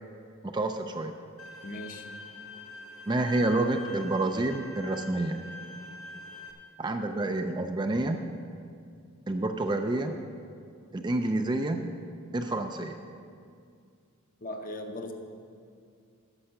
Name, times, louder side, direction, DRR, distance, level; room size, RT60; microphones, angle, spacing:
voice 1, 0.4-1.1 3.1-5.4 6.8-8.2 9.3-10.1 10.9-11.8 12.3-13.0, right 2 dB, 20° right, 6 dB, 0.4 m, -28 dB
Bowed string instrument, 1.4-6.5, left 2 dB, 90° left, 1.0 m, -44 dB
voice 2, 1.6-2.1 14.4-15.1, left 1 dB, 40° left, 4 dB, 0.8 m, -38 dB
10.0 x 6.7 x 6.5 m, 2.3 s
head